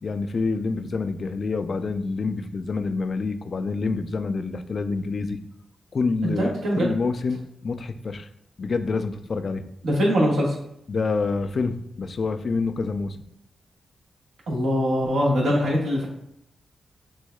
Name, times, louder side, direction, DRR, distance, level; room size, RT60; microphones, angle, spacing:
voice 1, 0.0-5.4 5.9-8.3 8.6-9.6 10.9-13.2, left 4 dB, 55° left, 10 dB, 0.3 m, -27 dB
voice 2, 6.2-6.9 9.8-10.5 14.5-16.0, equal, 80° right, -3 dB, 1.4 m, -22 dB
6.2 x 2.7 x 2.3 m, 0.75 s
supercardioid pair, 40°, 0 cm